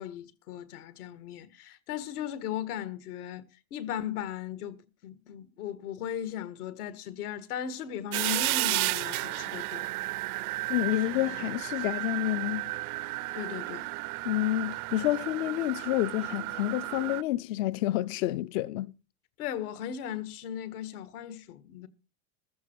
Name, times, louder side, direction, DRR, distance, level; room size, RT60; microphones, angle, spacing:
voice 1, 0.0-3.4 3.7-10.1 10.5-10.6 13.3-13.9 19.4-21.9, left 10 dB, 85° left, 1.8 m, -37 dB
sound 1, 8.1-17.2, right 20 dB, 75° right, 0.6 m, -33 dB
voice 2, 10.7-12.7 14.2-18.9, left 15 dB, 60° left, 0.6 m, -29 dB
15.0 x 12.5 x 4.5 m
supercardioid pair, 145°, 44 cm